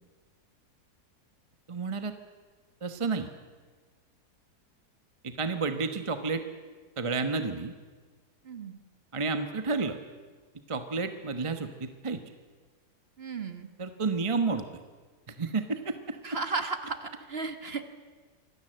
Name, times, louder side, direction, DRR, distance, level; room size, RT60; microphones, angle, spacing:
voice 1, 1.7-2.1 2.8-3.3 5.2-6.4 7.0-7.7 9.1-10.0 10.7-12.2 13.8-14.7 15.3-16.2, right 4 dB, 20° right, 8 dB, 1.0 m, -30 dB
voice 2, 8.4-8.8 13.2-13.7 16.2-17.8, right 4 dB, 40° right, 9 dB, 1.5 m, -34 dB
25.0 x 17.5 x 7.9 m, 1.5 s
omnidirectional pair, 1.7 m